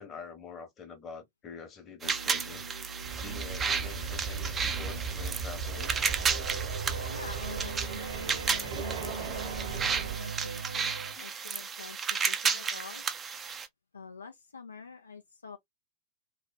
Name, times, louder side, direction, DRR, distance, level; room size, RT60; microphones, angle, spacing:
voice 1, 0.0-2.6 3.2-6.0 9.3-9.4 11.2-11.3, left 5 dB, 30° left, 1.0 m, -46 dB
sound 1, 2.0-13.7, right 6 dB, 20° right, 0.5 m, -33 dB
sound 2, 2.0-11.2, right 5 dB, 85° right, 0.5 m, -40 dB
sound 3, 3.0-10.2, right 4 dB, 55° right, 1.0 m, -38 dB
voice 2, 7.1-13.0 13.9-15.6, left 5 dB, 75° left, 0.5 m, -48 dB
3.2 x 2.2 x 2.2 m
figure-of-eight pair, 90°, 0 cm